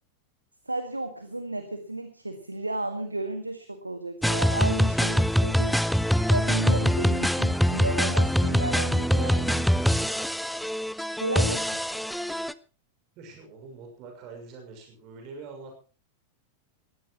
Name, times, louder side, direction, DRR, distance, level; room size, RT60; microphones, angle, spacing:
voice 1, 0.7-9.7 11.2-11.8, right 2 dB, 85° right, 9 dB, 1.9 m, -33 dB
sound 1, 4.2-12.5, equal, ahead, 0.8 m, -24 dB
voice 2, 13.2-15.7, right 4 dB, 40° right, 4 dB, 6.3 m, -44 dB
22.0 x 16.5 x 3.1 m, 0.35 s
figure-of-eight pair, 90°, 0 cm